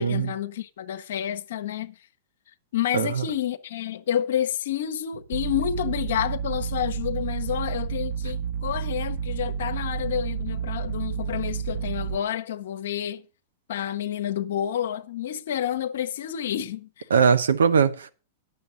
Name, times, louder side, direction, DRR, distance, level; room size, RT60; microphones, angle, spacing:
voice 1, 0.0-2.0 2.7-13.3 13.7-17.1, left 10 dB, 75° left, 0.7 m, -29 dB
sound 1, 5.3-12.2, right 7 dB, 50° right, 0.8 m, -30 dB
voice 2, 17.1-18.1, right 6 dB, 85° right, 0.9 m, -20 dB
9.5 x 6.9 x 6.2 m
hypercardioid pair, 115°, 0 cm